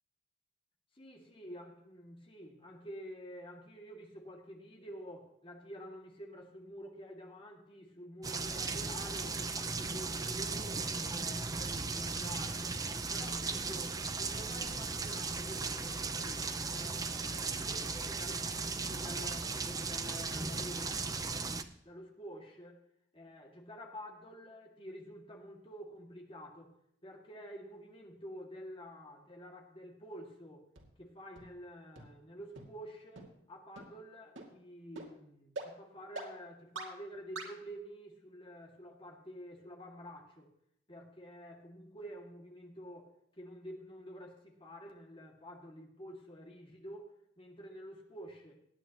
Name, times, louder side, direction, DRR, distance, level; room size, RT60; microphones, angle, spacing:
voice 1, 0.9-12.6 13.1-21.2 21.8-22.8 23.1-26.8 27.0-30.7 31.0-40.5 40.9-48.6, equal, 30° left, 2 dB, 2.1 m, -49 dB
sound 1, 8.2-21.6, right 4 dB, 20° right, 0.6 m, -37 dB
sound 2, 30.8-30.9 31.4-31.5 32.0-32.1 32.6-32.7 33.2-33.3 33.8-33.9 34.4-34.5 35.0-35.1 35.6-35.7 36.2-36.3 36.8-36.9 37.4-37.5, right 3 dB, 90° right, 2.4 m, -42 dB
18.5 x 9.3 x 3.0 m, 0.74 s
head